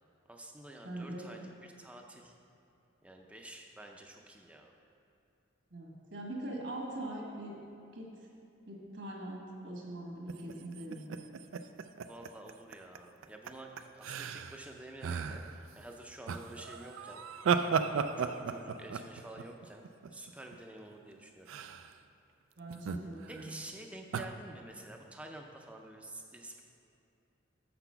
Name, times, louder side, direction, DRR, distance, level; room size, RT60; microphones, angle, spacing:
voice 1, 0.3-2.3 3.0-4.7 12.1-15.4 15.7-17.2 17.7-19.8 20.1-21.5 23.3-26.6, right 1 dB, 5° right, 2 dB, 0.5 m, -49 dB
voice 2, 0.8-1.3 5.7-7.6 7.9-8.1 8.6-11.0 22.6-23.5, right 1 dB, 60° right, -1 dB, 1.6 m, -42 dB
sound 1, 10.3-13.0 13.2-13.5 13.8-14.7 15.0-15.6 16.3-20.5 21.5-21.9 22.7-23.5 24.1-24.3, right 6 dB, 80° right, 0.4 m, -35 dB
6.8 x 6.0 x 5.7 m, 2.7 s
head